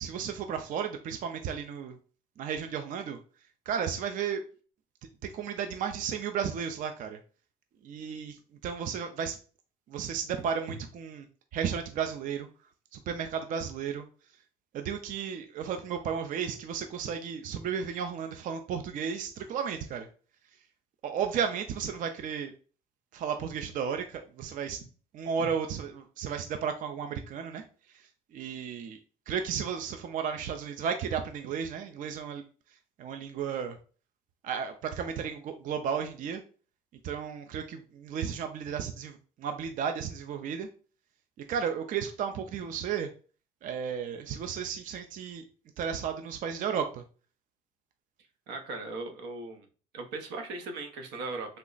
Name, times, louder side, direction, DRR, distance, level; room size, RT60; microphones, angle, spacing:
voice 1, 0.0-2.0 2.4-3.2 3.7-4.4 5.2-7.2 7.8-9.4 9.9-11.3 11.5-12.5 12.9-14.0 14.7-20.1 21.0-22.5 23.1-24.8 25.1-29.0 29.3-32.4 33.0-33.8 34.4-36.4 37.0-40.7 41.5-43.1 43.6-45.4 45.8-47.0, right 7 dB, 50° right, 6 dB, 0.4 m, -34 dB
voice 2, 48.5-49.7 49.9-51.6, right 3 dB, 85° right, 5 dB, 0.7 m, -38 dB
3.3 x 2.0 x 3.8 m, 0.39 s
cardioid pair, 110°, 17 cm